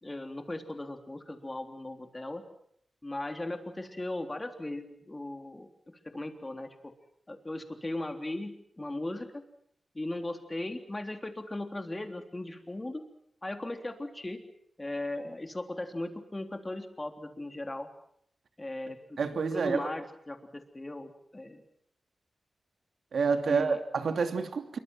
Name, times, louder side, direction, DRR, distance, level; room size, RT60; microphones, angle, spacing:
voice 1, 0.0-2.4 3.0-6.7 7.3-9.4 9.9-13.1 13.4-14.4 14.8-17.9 18.6-21.6 23.5-23.8, left 1 dB, 20° left, 5 dB, 3.5 m, -38 dB
voice 2, 19.2-19.9 23.1-24.8, right 5 dB, 75° right, 7 dB, 2.8 m, -28 dB
27.0 x 24.0 x 6.3 m, 0.70 s
wide cardioid pair, 105°, 0 cm